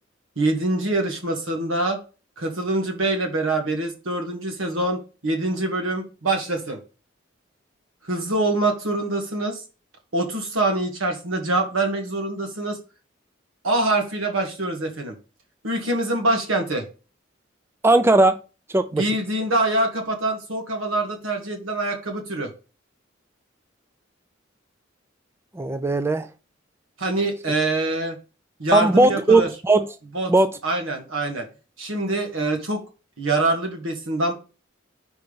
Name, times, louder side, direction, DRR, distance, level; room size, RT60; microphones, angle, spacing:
voice 1, 0.3-2.0 2.4-6.8 8.0-9.6 10.1-12.8 13.6-15.2 15.6-16.8 18.9-22.5 27.0-28.2 28.6-29.5 30.1-30.3 30.6-31.5 31.8-32.8 33.2-34.3, right 2 dB, 90° right, 1.7 m, -24 dB
voice 2, 17.8-18.4 18.7-19.0 25.6-26.3 28.7-29.9 30.3-30.5, right 2 dB, 10° right, 0.3 m, -18 dB
5.1 x 4.5 x 5.4 m
head